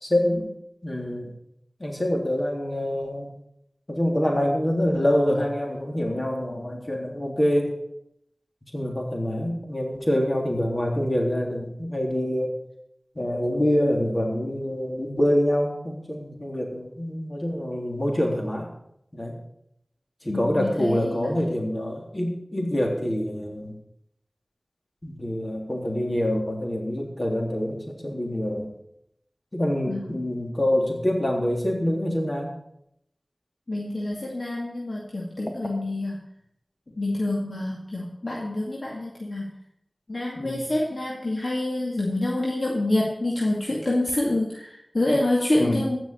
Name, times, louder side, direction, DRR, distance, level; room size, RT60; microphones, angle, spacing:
voice 1, 0.0-0.5 0.8-1.3 1.8-3.3 3.9-7.8 8.7-12.6 13.1-18.7 19.1-19.4 20.2-23.8 25.0-28.7 29.5-32.5 40.3-40.6 45.6-45.8, left 1 dB, 40° left, 0 dB, 3.4 m, -26 dB
voice 2, 20.3-21.3 29.9-30.1 33.7-36.2 37.0-39.4 40.1-46.0, left 1 dB, 65° left, -3 dB, 2.2 m, -27 dB
15.5 x 6.2 x 6.9 m, 0.76 s
wide cardioid pair, 50°, 0 cm